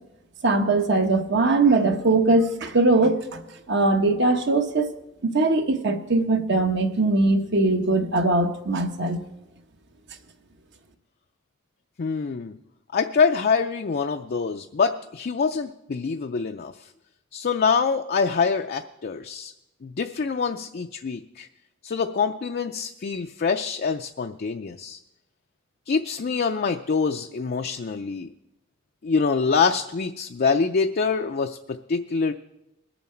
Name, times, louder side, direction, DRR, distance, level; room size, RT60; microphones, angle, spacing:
voice 1, 0.4-3.4 3.7-4.9 5.2-9.2, right 2 dB, 55° right, 6 dB, 1.0 m, -21 dB
voice 2, 12.0-12.6 12.9-16.9 17.3-19.5 19.8-21.5 21.8-25.0 25.9-28.3 29.0-32.3, left 5 dB, 45° left, 5 dB, 0.4 m, -25 dB
21.0 x 7.1 x 4.4 m, 0.90 s
head